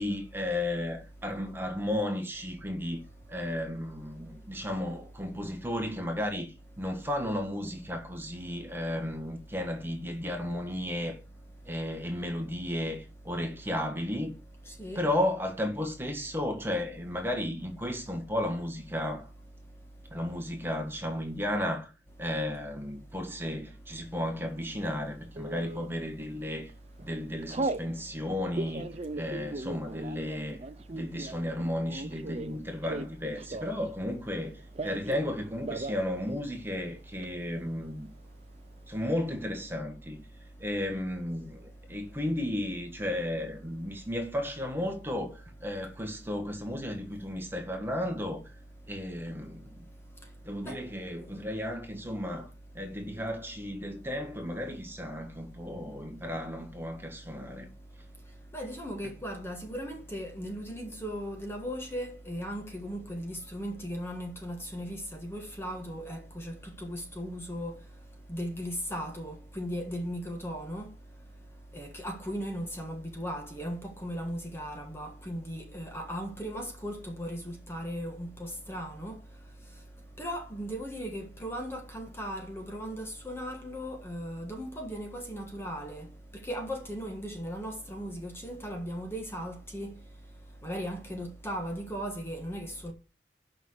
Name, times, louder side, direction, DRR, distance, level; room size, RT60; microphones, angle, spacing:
voice 1, 0.0-3.0 3.3-11.2 11.6-14.3 14.9-19.3 20.1-21.9 22.2-26.7 27.0-30.6 30.9-38.1 38.9-40.3 40.6-48.4 48.9-49.8 50.4-52.5 52.7-57.7, left 1 dB, 15° right, 1.6 m, -34 dB
Telephone, 25.4-25.9 26.4-26.7 27.0-27.9 28.4-33.9 34.2-35.3 35.6-36.0 36.3-36.4 36.7-37.3, right 2 dB, 35° right, 0.5 m, -37 dB
voice 2, 58.5-67.7 68.3-70.9 71.7-79.1 80.2-86.1 86.4-89.9 90.6-92.9, equal, 15° left, 1.5 m, -37 dB
7.2 x 5.6 x 6.5 m
head